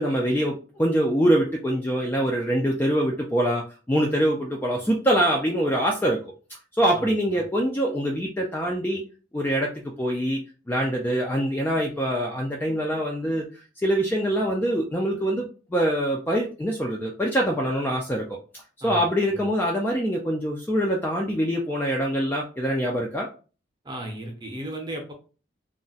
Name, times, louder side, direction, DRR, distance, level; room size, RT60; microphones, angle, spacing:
voice 1, 0.0-3.6 3.9-6.3 6.8-9.0 9.3-10.4 10.7-13.5 13.8-18.4 18.8-23.3, equal, 10° left, -1 dB, 0.3 m, -24 dB
voice 2, 6.9-7.5 18.8-19.5 23.8-25.1, right 1 dB, 20° right, 1 dB, 0.7 m, -36 dB
2.3 x 2.1 x 3.9 m, 0.36 s
head